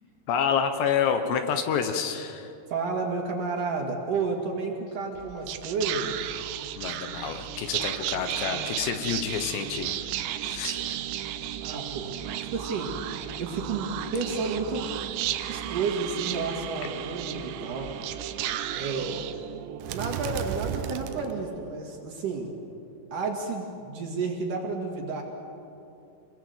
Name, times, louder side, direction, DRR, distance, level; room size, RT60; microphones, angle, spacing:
voice 1, 0.3-2.5 6.8-9.9 10.4-11.0, left 7 dB, 75° left, 7 dB, 3.1 m, -28 dB
voice 2, 2.7-6.3 11.6-12.2 12.4-12.9 13.4-14.8 15.5-17.9 18.7-19.3 19.9-22.5 23.1-25.2, right 4 dB, 55° right, 1 dB, 3.0 m, -31 dB
Whispering, 5.2-21.7, right 11 dB, 80° right, 3.0 m, -34 dB
26.5 x 21.5 x 8.0 m, 2.7 s
omnidirectional pair, 5.4 m